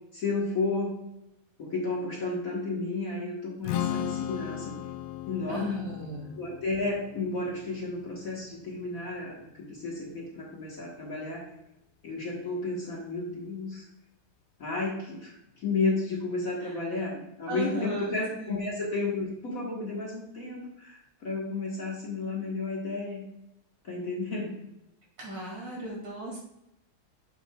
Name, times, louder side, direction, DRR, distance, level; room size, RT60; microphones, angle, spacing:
voice 1, 0.1-1.0 1.6-4.8 5.3-5.8 6.4-11.5 12.0-13.9 14.6-23.2 23.8-24.6, left 3 dB, 45° left, -3 dB, 1.7 m, -32 dB
Strum, 3.6-9.9, left 12 dB, 80° left, 1.4 m, -37 dB
voice 2, 5.5-6.2 16.6-16.8 17.5-18.6 25.2-26.4, right 1 dB, 45° right, -2 dB, 2.5 m, -36 dB
8.7 x 6.7 x 2.3 m, 0.88 s
omnidirectional pair, 2.3 m